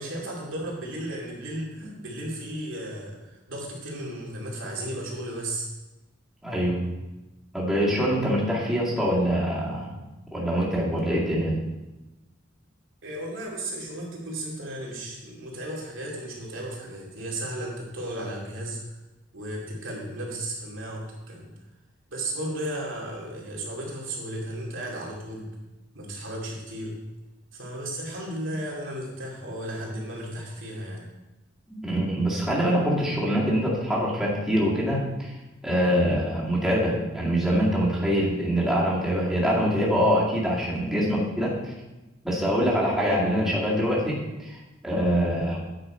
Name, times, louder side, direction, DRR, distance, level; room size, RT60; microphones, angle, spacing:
voice 1, 0.0-5.7 13.0-18.8 19.3-21.5 22.1-25.5 25.9-27.0 27.5-31.1, right 1 dB, 70° right, -3 dB, 2.7 m, -34 dB
voice 2, 6.4-6.9 7.5-9.9 10.3-11.6 31.7-35.3 35.6-41.7 42.2-44.6 44.8-45.6, equal, ahead, -6 dB, 2.1 m, -24 dB
9.0 x 6.9 x 4.4 m, 1.0 s
head